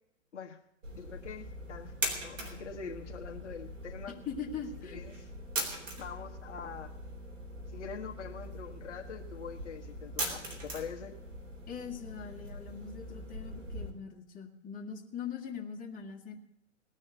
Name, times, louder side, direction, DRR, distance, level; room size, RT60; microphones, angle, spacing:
sound 1, 0.8-13.9, right 1 dB, 80° right, 4.2 m, -41 dB
voice 1, 0.9-1.9 2.2-4.1 4.8-5.3 6.0-6.9 7.7-11.2, left 6 dB, 70° left, 3 dB, 1.5 m, -44 dB
voice 2, 4.3-5.0 11.7-16.4, left 7 dB, 20° left, 0 dB, 2.3 m, -41 dB
19.0 x 6.4 x 9.2 m, 0.79 s
hypercardioid pair, 120°, 37 cm